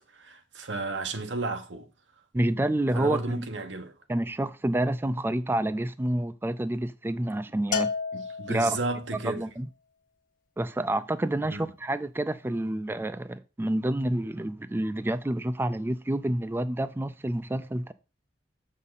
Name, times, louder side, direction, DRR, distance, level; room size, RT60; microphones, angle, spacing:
voice 1, 0.1-1.9 2.9-3.9 8.1-9.5 11.4-11.7, right 2 dB, 90° right, 1.1 m, -33 dB
voice 2, 2.3-3.2 4.1-7.9 8.5-8.8 9.2-9.7 10.6-17.9, right 1 dB, 15° right, 0.3 m, -28 dB
Bell, 7.7-9.1, left 5 dB, 50° left, 1.1 m, -31 dB
7.3 x 5.5 x 4.0 m
head